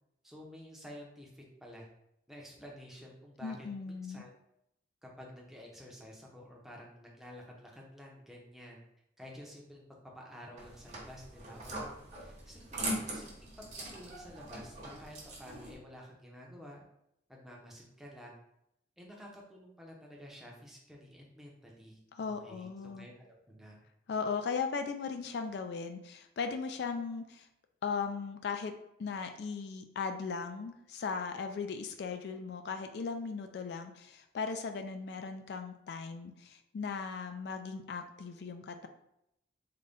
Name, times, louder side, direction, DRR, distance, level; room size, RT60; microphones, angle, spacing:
voice 1, 0.2-1.9 2.3-4.3 5.0-8.8 9.2-9.8 10.1-13.7 13.9-16.8 17.3-18.4 19.0-23.8, equal, ahead, -2 dB, 0.6 m, -51 dB
voice 2, 3.4-4.2 22.2-23.1 24.1-27.5 27.8-28.7 29.0-38.9, left 5 dB, 60° left, 6 dB, 0.3 m, -37 dB
sound 1, 10.6-15.7, right 1 dB, 40° right, 0.9 m, -41 dB
3.8 x 2.2 x 3.4 m, 0.80 s
head